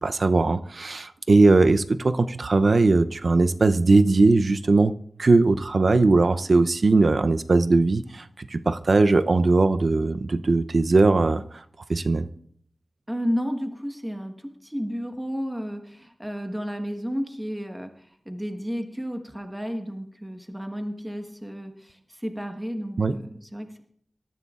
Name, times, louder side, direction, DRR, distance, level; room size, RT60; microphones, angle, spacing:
voice 1, 0.0-4.9 5.2-8.2 8.5-11.6 11.9-12.3 23.0-23.2, right 3 dB, 60° right, 10 dB, 0.6 m, -19 dB
voice 2, 13.1-23.8, equal, 10° right, 5 dB, 1.3 m, -32 dB
26.0 x 13.5 x 2.5 m, 0.64 s
wide cardioid pair, 90°, 0 cm